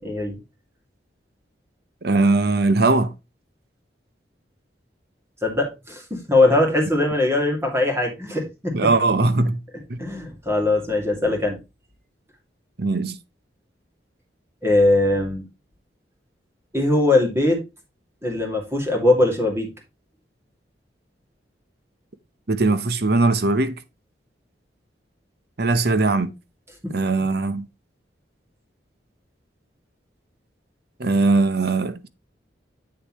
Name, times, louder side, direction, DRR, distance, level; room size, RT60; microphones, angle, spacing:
voice 1, 0.0-0.4 5.4-8.8 10.0-11.6 14.6-15.4 16.7-17.6 18.2-19.7 26.8-26.9, left 2 dB, 15° right, 2.3 m, -20 dB
voice 2, 2.0-3.1 8.7-9.6 9.9-10.0 12.8-13.2 22.5-23.8 25.6-26.3 26.9-27.7 31.0-32.1, right 3 dB, 60° right, 0.8 m, -20 dB
8.1 x 6.6 x 3.0 m
head